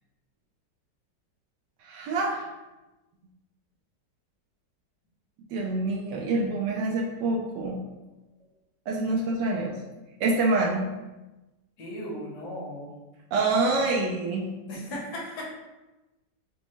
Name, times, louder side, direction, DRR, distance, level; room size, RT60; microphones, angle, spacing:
voice 1, 1.8-2.5 5.5-7.8 8.9-9.8 10.2-10.9 13.3-14.5, right 2 dB, 75° right, -1 dB, 1.2 m, -26 dB
voice 2, 11.8-12.9 14.7-15.4, equal, 65° left, -3 dB, 1.5 m, -36 dB
5.1 x 2.0 x 3.1 m, 1.1 s
omnidirectional pair, 1.9 m